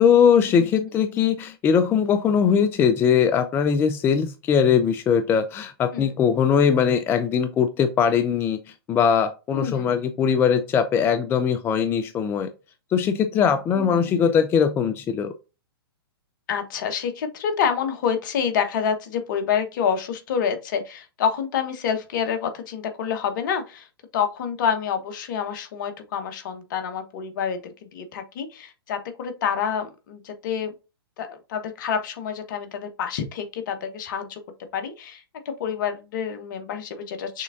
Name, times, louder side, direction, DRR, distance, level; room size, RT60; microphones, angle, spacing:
voice 1, 0.0-8.6 8.9-12.5 12.9-15.3, left 7 dB, 15° left, 0.3 m, -20 dB
voice 2, 0.6-1.0 5.9-6.1 9.5-10.0 13.7-14.4 16.5-23.9 24.1-30.7 31.2-34.4 34.7-37.4, left 7 dB, 50° left, 1.1 m, -28 dB
6.4 x 3.3 x 2.5 m
hypercardioid pair, 120°, 13 cm